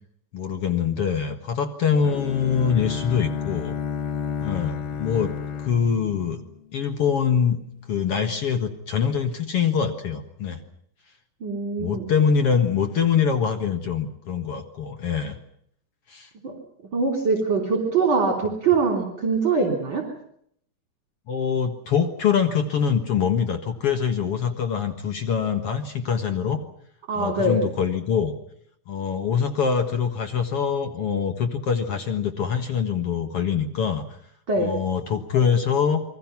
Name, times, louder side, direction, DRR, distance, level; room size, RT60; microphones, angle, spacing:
voice 1, 0.3-3.8 4.4-5.3 5.6-6.4 6.7-7.6 7.9-10.6 11.8-15.4 16.1-16.3 21.3-26.6 27.1-28.3 28.9-34.0 34.6-36.0, left 7 dB, 65° left, 7 dB, 1.5 m, -24 dB
Bowed string instrument, 2.0-7.0, left 7 dB, 80° left, 1.3 m, -31 dB
voice 2, 11.4-12.1 16.4-16.5 16.9-20.0 27.1-27.6 34.5-34.7, right 4 dB, 30° right, 3 dB, 3.4 m, -23 dB
28.5 x 22.5 x 5.9 m, 0.70 s
omnidirectional pair, 5.0 m